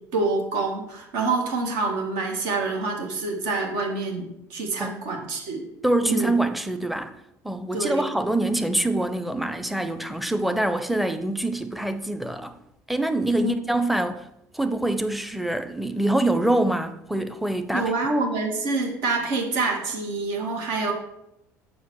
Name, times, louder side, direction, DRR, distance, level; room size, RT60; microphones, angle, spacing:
voice 1, 0.1-5.7 6.1-6.3 7.7-8.1 13.4-13.6 17.7-20.9, right 3 dB, 65° right, 1.8 m, -26 dB
voice 2, 5.8-7.2 7.4-12.6 12.9-14.3 14.5-17.9, right 1 dB, ahead, 0.7 m, -25 dB
6.7 x 4.8 x 6.2 m
figure-of-eight pair, 60°, 9 cm